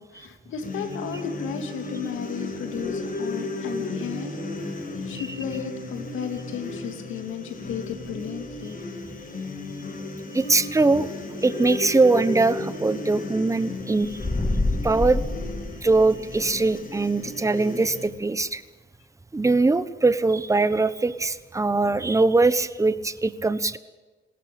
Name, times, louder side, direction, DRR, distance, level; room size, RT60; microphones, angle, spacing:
voice 1, 0.0-8.8, left 7 dB, 80° left, 6 dB, 2.7 m, -34 dB
sound 1, 0.6-18.1, left 2 dB, 45° left, 4.8 m, -35 dB
voice 2, 10.3-11.1 11.4-14.2 14.8-15.2 15.8-18.6 19.3-23.8, right 3 dB, 15° right, 14 dB, 1.1 m, -21 dB
sound 2, 14.1-16.5, left 2 dB, 15° left, 1.7 m, -27 dB
20.5 x 17.5 x 8.8 m, 1.3 s
cardioid pair, 90°, 20 cm